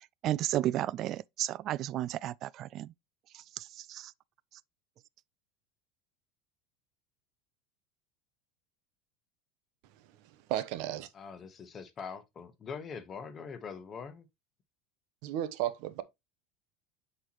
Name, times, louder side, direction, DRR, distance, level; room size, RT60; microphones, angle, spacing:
voice 1, 0.2-2.9 3.3-4.1, right 13 dB, 50° right, 0.3 m, -33 dB
voice 2, 10.5-11.1 15.2-16.0, right 12 dB, 65° right, 0.9 m, -33 dB
voice 3, 11.1-14.2, left 6 dB, 30° left, 1.3 m, -43 dB
8.0 x 4.5 x 3.0 m
supercardioid pair, 115°, 0 cm